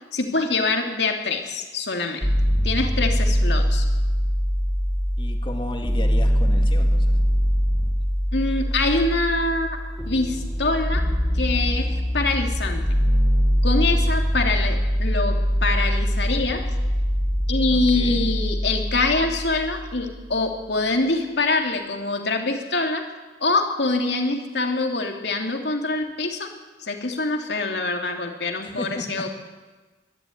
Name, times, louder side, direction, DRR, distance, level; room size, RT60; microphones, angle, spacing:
voice 1, 0.1-2.3 2.6-3.8 8.3-9.8 10.1-11.0 11.3-12.8 13.6-16.6 17.5-23.0 23.4-26.5 26.8-29.3, left 3 dB, 65° left, 3 dB, 3.0 m, -24 dB
sound 1, 2.2-20.2, equal, 10° left, 1.4 m, -22 dB
voice 2, 5.2-7.1 17.7-18.2 28.6-29.3, left 1 dB, 30° left, 3 dB, 2.6 m, -34 dB
23.0 x 12.5 x 9.6 m, 1.3 s
head